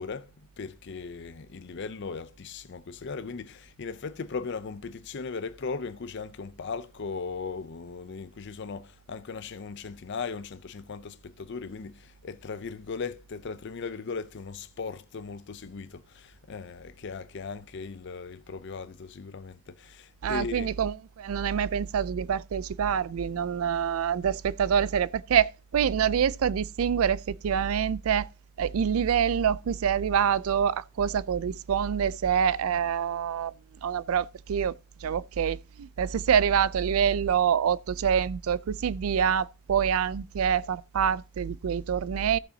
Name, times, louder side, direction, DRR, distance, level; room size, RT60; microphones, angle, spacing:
voice 1, 0.0-20.7, left 4 dB, 55° left, 0.5 m, -38 dB
voice 2, 20.2-28.3 28.6-33.5 33.8-42.4, right 8 dB, 85° right, 0.4 m, -26 dB
14.5 x 6.9 x 2.7 m
head